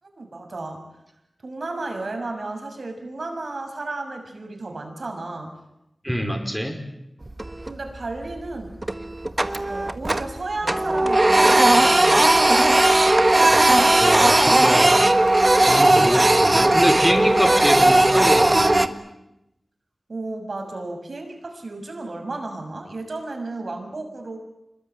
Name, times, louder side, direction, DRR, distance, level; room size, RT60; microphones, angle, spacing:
voice 1, 0.0-0.8 1.4-5.5 7.6-8.7 9.7-12.5 20.1-24.4, right 2 dB, 70° right, 4 dB, 6.6 m, -33 dB
voice 2, 6.0-6.8 13.5-15.1 15.7-18.9, equal, ahead, 5 dB, 5.3 m, -24 dB
Printer, 7.3-7.9 8.2-8.4 8.8-10.4 10.6-18.9, right 1 dB, 35° right, 1.6 m, -17 dB
26.0 x 22.0 x 9.4 m, 0.88 s
wide cardioid pair, 50°, 0 cm